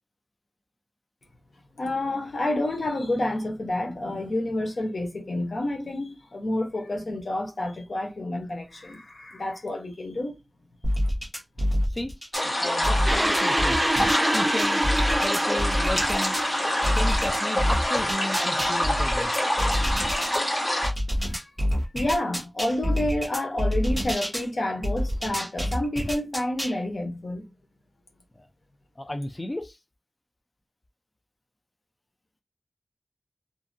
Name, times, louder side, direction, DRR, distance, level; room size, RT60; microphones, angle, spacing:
voice 1, 1.8-10.4 21.3-21.5 21.9-27.5, left 1 dB, 80° left, 0.9 m, -29 dB
sound 1, 10.8-12.5 12.8-16.5 16.8-20.4 20.8-24.5 24.8-26.8, equal, ahead, 1.0 m, -27 dB
sound 2, 12.3-20.9, left 1 dB, 50° left, 1.5 m, -26 dB
voice 2, 12.6-13.8 14.3-14.8 15.2-16.4 17.0-19.3 28.4-28.5 29.0-29.8, left 1 dB, 30° left, 0.4 m, -33 dB
sound 3, 13.1-20.2, right 1 dB, 20° right, 0.6 m, -29 dB
2.7 x 2.5 x 2.5 m
wide cardioid pair, 55°, 0 cm